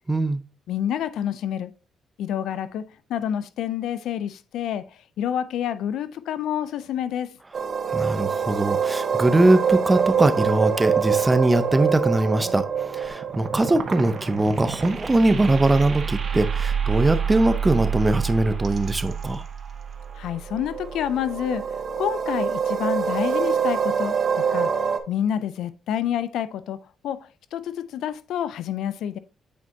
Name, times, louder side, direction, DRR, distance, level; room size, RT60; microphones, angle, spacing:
voice 1, 0.1-0.4 7.9-19.4, right 2 dB, 15° right, 0.6 m, -21 dB
voice 2, 0.7-1.7 2.2-7.4 20.2-24.7 25.1-29.2, left 10 dB, 80° left, 0.4 m, -28 dB
sound 1, 7.5-25.0, right 7 dB, 45° right, 0.8 m, -26 dB
8.4 x 4.4 x 2.7 m
cardioid pair, 90°, 0 cm